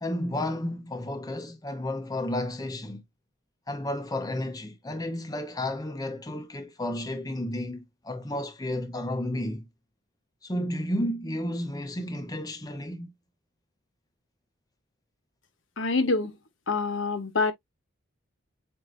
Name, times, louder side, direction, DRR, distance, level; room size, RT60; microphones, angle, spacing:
voice 1, 0.0-3.0 3.7-9.7 10.4-13.1, left 1 dB, 20° left, 0.7 m, -32 dB
voice 2, 15.8-16.3 16.7-17.5, left 3 dB, 65° left, 1.0 m, -26 dB
7.7 x 2.7 x 2.5 m
head